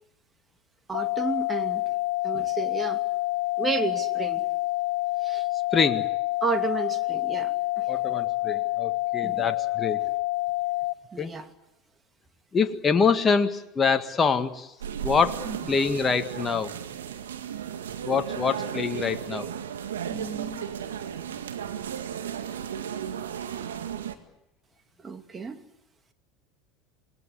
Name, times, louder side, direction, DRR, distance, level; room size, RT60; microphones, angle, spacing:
sound 1, 0.9-10.9, left 19 dB, 80° left, 1.0 m, -27 dB
voice 1, 0.9-1.8 2.2-3.0 3.6-4.5 5.2-5.5 6.4-7.9 9.2-9.5 10.0-10.1 11.1-11.5 15.4-15.8 20.0-20.7 25.0-25.6, right 4 dB, 25° right, 2.5 m, -32 dB
voice 2, 5.7-6.1 7.9-10.0 11.2-11.3 12.5-14.7 15.0-15.4 15.7-16.7 18.1-19.5, left 5 dB, 25° left, 1.8 m, -25 dB
sound 2, 14.8-24.1, right 8 dB, 80° right, 2.0 m, -35 dB
27.0 x 20.5 x 8.5 m
hypercardioid pair, 85°, 0 cm